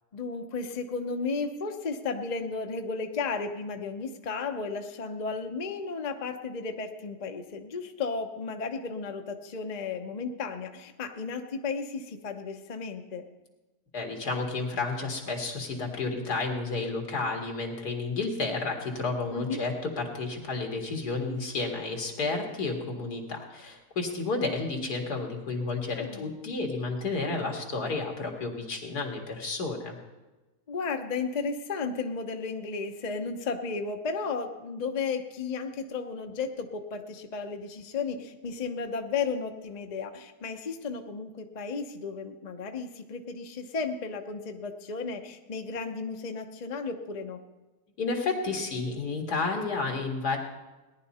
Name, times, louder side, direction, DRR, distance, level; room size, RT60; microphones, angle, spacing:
voice 1, 0.1-13.3 19.3-19.6 25.9-26.4 30.7-47.4, left 4 dB, 35° left, 5 dB, 0.8 m, -34 dB
voice 2, 13.9-30.0 48.0-50.4, left 3 dB, 80° left, 1 dB, 2.6 m, -31 dB
18.0 x 11.0 x 4.2 m, 1.2 s
omnidirectional pair, 1.7 m